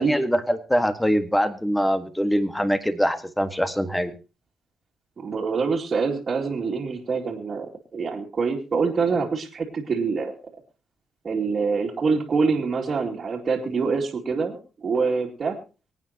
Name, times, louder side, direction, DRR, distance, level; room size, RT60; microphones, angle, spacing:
voice 1, 0.0-4.1, equal, 5° left, 10 dB, 1.6 m, -23 dB
voice 2, 5.2-10.3 11.2-15.6, right 4 dB, 45° right, -3 dB, 2.4 m, -25 dB
24.5 x 9.1 x 2.9 m, 0.33 s
cardioid pair, 90°, 0 cm